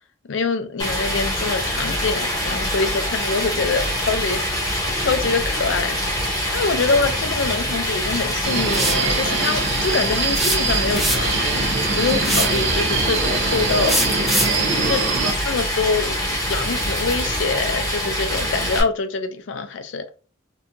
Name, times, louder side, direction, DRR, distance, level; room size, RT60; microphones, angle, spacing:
voice 1, 0.3-4.4 4.9-6.0 6.5-11.4 11.9-14.0 14.8-15.0 15.5-20.0, left 4 dB, 70° left, 0.4 m, -24 dB
Stream, 0.8-18.8, equal, 20° left, 0.7 m, -24 dB
Subway metro underground, 8.4-15.3, right 4 dB, 65° right, 0.5 m, -24 dB
sound 1, 8.7-9.1 10.4-11.4 12.2-12.6 13.9-14.6, right 1 dB, ahead, 0.4 m, -22 dB
2.8 x 2.2 x 2.5 m
head